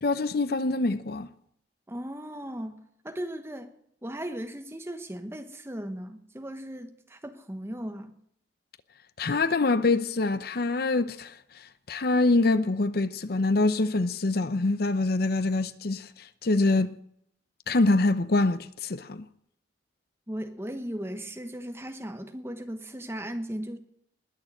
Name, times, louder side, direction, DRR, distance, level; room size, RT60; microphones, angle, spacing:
voice 1, 0.0-1.3 9.2-11.4 11.9-17.0 17.7-19.3, left 2 dB, 55° left, 0.7 m, -25 dB
voice 2, 1.9-2.8 3.0-3.7 4.0-8.2 20.3-23.8, equal, 15° right, 1.2 m, -37 dB
20.5 x 6.9 x 7.7 m
head